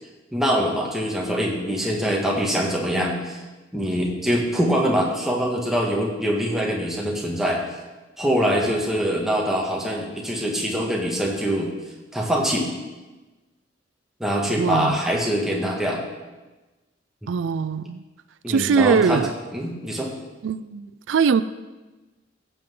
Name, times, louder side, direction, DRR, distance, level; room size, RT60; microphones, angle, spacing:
voice 1, 0.3-3.4 3.7-7.6 8.2-11.7 12.1-12.7 14.2-16.0 17.2-17.3 18.4-19.2 19.5-20.1, equal, ahead, -2 dB, 1.7 m, -24 dB
voice 2, 14.6-15.0 17.3-18.0 18.5-19.3 20.4-21.4, right 6 dB, 85° right, 14 dB, 0.4 m, -21 dB
15.0 x 8.0 x 3.8 m, 1.2 s
head